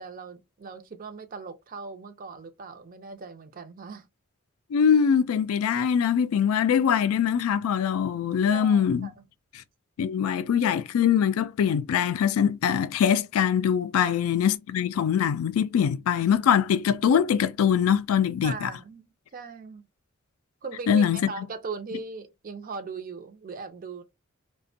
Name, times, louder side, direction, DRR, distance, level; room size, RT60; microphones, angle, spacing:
voice 1, 0.0-4.1 8.5-9.2 14.0-14.4 18.4-19.8 20.6-24.0, right 4 dB, 40° right, 0.5 m, -39 dB
voice 2, 4.7-9.1 10.0-18.7 20.9-21.3, left 8 dB, 85° left, 0.3 m, -23 dB
2.5 x 2.2 x 2.6 m
head